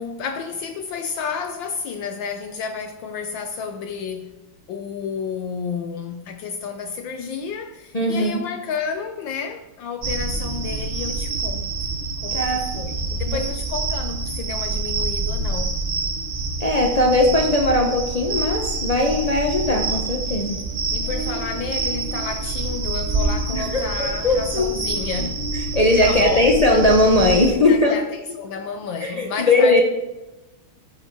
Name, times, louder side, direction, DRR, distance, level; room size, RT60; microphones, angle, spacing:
voice 1, 0.0-4.4 4.7-11.8 12.2-15.8 20.9-25.5 26.0-26.5 27.4-29.8, left 6 dB, 70° left, 1.2 m, -31 dB
voice 2, 7.9-8.4 12.3-12.7 13.2-13.4 16.6-20.7 23.5-23.8 24.2-24.7 25.7-27.9 29.0-29.8, left 2 dB, 90° left, 0.3 m, -19 dB
sound 1, 10.0-27.5, right 3 dB, 85° right, 0.4 m, -27 dB
13.5 x 5.3 x 4.7 m
omnidirectional pair, 2.3 m